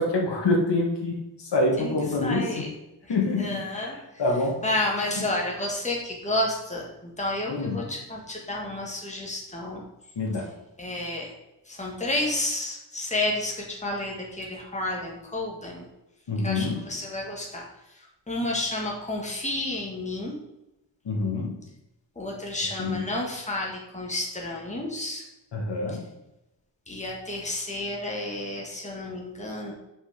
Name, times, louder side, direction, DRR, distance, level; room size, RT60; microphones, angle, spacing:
voice 1, 0.0-2.6 3.1-4.6 7.5-7.9 10.2-10.5 16.3-16.8 21.1-21.6 22.8-23.0 25.5-26.0, left 2 dB, 70° left, 0 dB, 1.8 m, -26 dB
voice 2, 2.2-2.7 3.4-4.0 4.6-9.8 10.8-11.3 11.7-15.9 16.4-17.7 17.9-20.3 22.2-25.3 26.9-29.7, left 1 dB, 15° left, -2 dB, 1.6 m, -31 dB
6.1 x 5.3 x 5.0 m, 0.92 s
wide cardioid pair, 155°, 43 cm